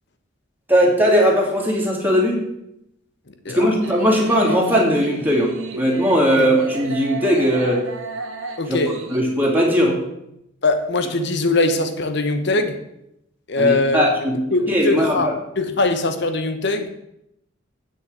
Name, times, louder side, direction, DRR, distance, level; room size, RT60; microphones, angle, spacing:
voice 1, 0.7-2.4 3.5-7.9 8.7-8.8 9.1-10.0 13.6-14.4 14.7-15.3, equal, 10° right, 2.6 m, -18 dB
voice 2, 3.3-3.8 6.4-6.5 8.6-9.1 10.6-12.8 13.5-14.1 14.5-16.9, left 2 dB, 60° left, 1.1 m, -21 dB
sound 1, 3.8-9.2, right 3 dB, 80° right, 1.5 m, -33 dB
7.8 x 6.5 x 8.1 m
head